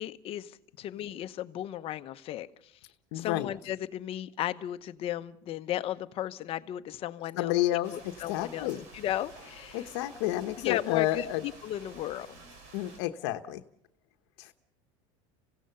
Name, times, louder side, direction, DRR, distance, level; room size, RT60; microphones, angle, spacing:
voice 1, 0.0-2.7 3.1-7.5 7.9-9.9 10.6-12.4, left 12 dB, 45° left, 12 dB, 0.9 m, -35 dB
voice 2, 3.1-3.5 7.4-7.9 8.3-8.8 9.7-11.4 12.7-13.6 14.4-14.5, left 15 dB, 75° left, 7 dB, 1.0 m, -30 dB
sound 1, 7.8-13.0, right 3 dB, 60° right, 5.3 m, -51 dB
27.0 x 16.5 x 6.9 m, 0.70 s
supercardioid pair, 135°, 14 cm